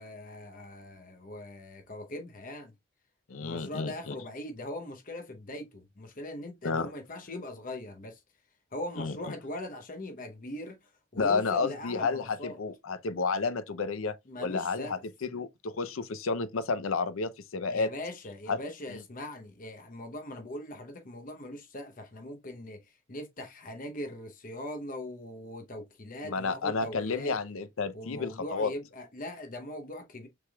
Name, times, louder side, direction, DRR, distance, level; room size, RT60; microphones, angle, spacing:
voice 1, 0.0-2.7 3.4-8.2 8.7-12.6 14.3-15.0 17.7-22.8 23.1-27.4 27.9-30.3, left 1 dB, 40° left, 0.8 m, -41 dB
voice 2, 3.3-4.2 6.6-6.9 9.0-9.1 11.2-17.9 18.5-18.6 18.9-19.0 26.2-28.7, left 4 dB, 85° left, 0.6 m, -31 dB
6.2 x 3.4 x 2.2 m
head